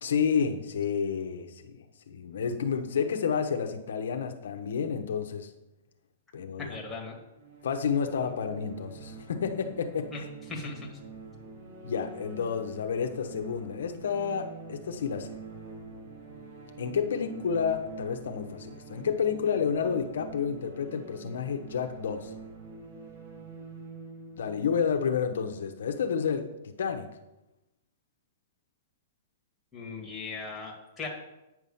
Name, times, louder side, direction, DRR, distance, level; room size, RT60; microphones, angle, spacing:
voice 1, 0.0-5.5 6.3-6.8 7.6-10.3 11.8-15.3 16.8-22.3 24.4-27.1, left 6 dB, 80° left, 6 dB, 0.9 m, -30 dB
voice 2, 6.6-7.2 10.1-10.2 10.5-10.9 29.7-31.1, left 3 dB, 5° left, -3 dB, 1.9 m, -38 dB
sound 1, 7.3-26.0, right 4 dB, 80° right, 2.5 m, -46 dB
9.2 x 6.1 x 5.5 m, 0.95 s
hypercardioid pair, 160°, 0 cm